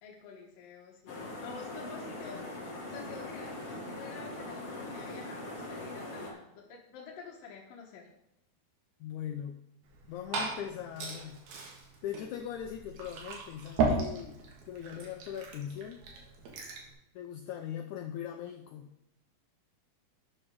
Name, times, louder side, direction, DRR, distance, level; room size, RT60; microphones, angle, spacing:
voice 1, 0.0-2.4 2.8-8.1, left 5 dB, 70° left, -2 dB, 2.7 m, -49 dB
sound 1, 1.1-6.3, left 2 dB, 45° left, 2.6 m, -41 dB
voice 2, 9.0-9.6 10.1-11.4 12.0-14.4 14.6-16.0 17.1-18.9, left 9 dB, 90° left, 5 dB, 1.7 m, -40 dB
Liquid, 9.8-16.9, right 4 dB, 90° right, 3.8 m, -36 dB
12.0 x 8.3 x 3.7 m, 0.82 s
omnidirectional pair, 4.3 m